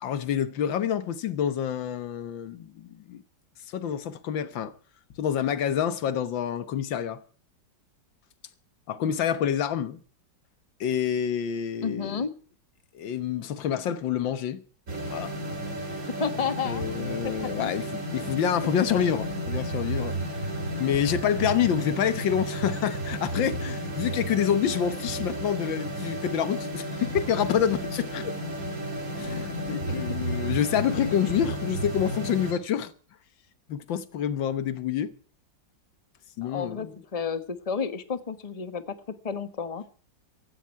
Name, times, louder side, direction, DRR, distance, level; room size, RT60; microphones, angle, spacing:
voice 1, 0.0-3.2 3.7-4.7 5.2-7.2 8.9-10.0 10.8-12.3 12.9-14.6 15.1-15.3 15.6-15.9 16.6-20.4 20.8-28.3 29.2-32.9 33.7-35.1 36.4-37.0, left 9 dB, 85° left, 1.8 m, -27 dB
voice 2, 11.8-12.3 16.2-16.8 17.2-17.7 29.7-29.9 36.4-38.9 39.2-39.8, left 6 dB, 20° left, 1.2 m, -31 dB
sound 1, 14.9-32.5, right 1 dB, 45° right, 3.5 m, -33 dB
16.0 x 14.5 x 4.6 m
omnidirectional pair, 2.0 m